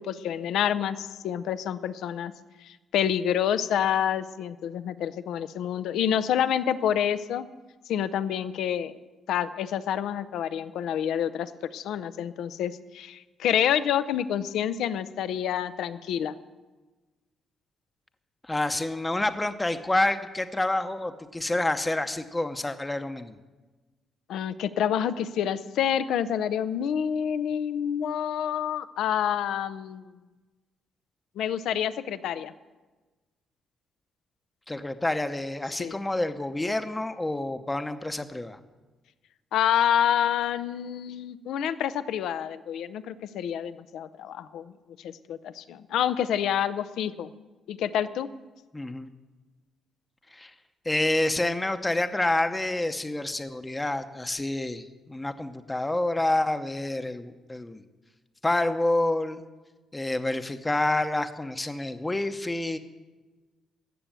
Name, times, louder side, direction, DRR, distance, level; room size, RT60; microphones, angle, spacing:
voice 1, 0.0-2.3 2.6-7.5 7.9-9.0 9.3-16.3 24.3-30.1 31.4-32.5 35.8-36.0 39.5-44.7 45.0-47.3 47.7-48.3, left 9 dB, 80° left, 14 dB, 0.6 m, -28 dB
voice 2, 18.5-23.4 34.7-38.6 48.7-49.1 50.3-50.5 50.8-57.8 58.4-59.4 59.9-62.8, left 2 dB, 15° left, 9 dB, 0.8 m, -28 dB
16.0 x 6.9 x 8.8 m, 1.2 s
cardioid pair, 90°, 0 cm